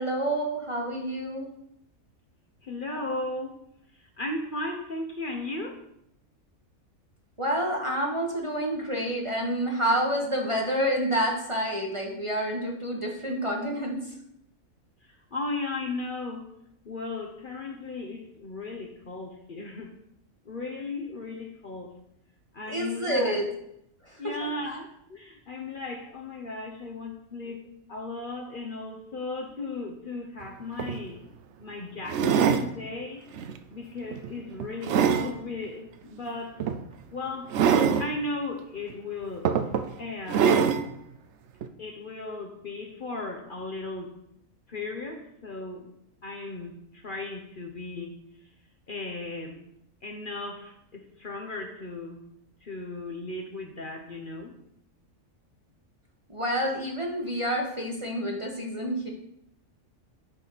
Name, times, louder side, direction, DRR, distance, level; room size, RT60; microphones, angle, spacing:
voice 1, 0.0-1.5 7.4-14.0 22.7-23.5 24.0-24.5 56.3-59.1, right 1 dB, 25° right, 0 dB, 1.0 m, -28 dB
voice 2, 2.6-3.6 3.9-5.8 15.1-16.5 16.8-19.9 20.4-22.0 22.5-23.5 24.2-31.2 31.6-33.3 33.7-36.6 37.1-37.6 38.0-39.5 40.0-40.6 41.8-44.1 44.7-45.9 46.2-48.2 48.9-49.6 50.0-52.3 52.6-54.6, left 2 dB, 45° left, 1 dB, 0.9 m, -36 dB
sound 1, 30.4-30.5 30.8-31.0 32.1-32.7 33.3-33.6 34.1-35.3 36.6-36.8 37.5-38.1 38.9-39.0 39.4-39.9 40.3-40.9 41.6-41.7, right 7 dB, 65° right, 0.8 m, -23 dB
9.0 x 6.0 x 4.0 m, 0.78 s
omnidirectional pair, 1.4 m